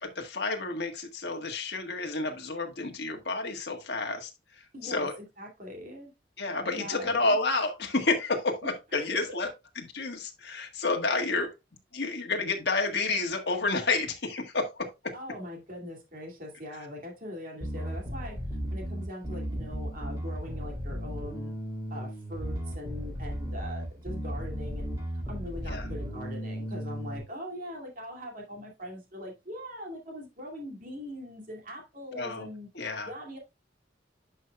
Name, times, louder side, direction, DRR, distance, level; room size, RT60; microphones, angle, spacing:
voice 1, 0.0-5.1 6.4-9.5 9.7-11.5 11.9-15.1 25.6-25.9 32.1-32.5 32.7-33.1, left 3 dB, 60° left, 1.6 m, -30 dB
voice 2, 4.7-6.1 6.7-7.4 8.6-9.3 11.1-11.2 15.1-18.4 18.7-21.5 21.9-25.0 25.3-32.7 33.1-33.4, equal, 45° right, 2.5 m, -41 dB
Bass guitar, 17.6-27.2, equal, 15° right, 3.4 m, -35 dB
10.5 x 5.5 x 2.3 m
head